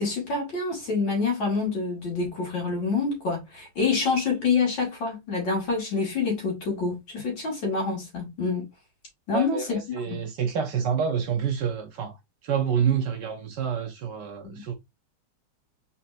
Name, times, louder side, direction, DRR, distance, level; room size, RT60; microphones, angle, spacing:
voice 1, 0.0-8.7 9.3-9.8 10.1-10.2 14.4-14.6, left 4 dB, 65° left, 2.8 m, -27 dB
voice 2, 9.3-14.7, right 7 dB, 65° right, 1.2 m, -28 dB
4.4 x 4.1 x 2.5 m
omnidirectional pair, 2.3 m